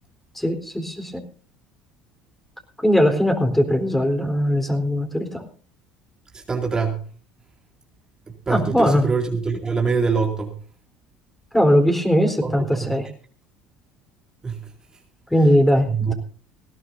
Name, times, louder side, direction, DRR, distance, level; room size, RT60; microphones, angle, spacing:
voice 1, 0.4-1.2 2.8-5.5 8.5-9.1 11.5-13.1 15.3-16.1, equal, 5° left, 5 dB, 4.1 m, -20 dB
voice 2, 6.5-7.0 8.5-10.5 12.4-12.5 12.8-12.9 14.4-14.6 15.9-16.1, right 5 dB, 25° right, 2 dB, 2.5 m, -23 dB
19.5 x 17.0 x 2.7 m, 0.41 s
hypercardioid pair, 70°, 3 cm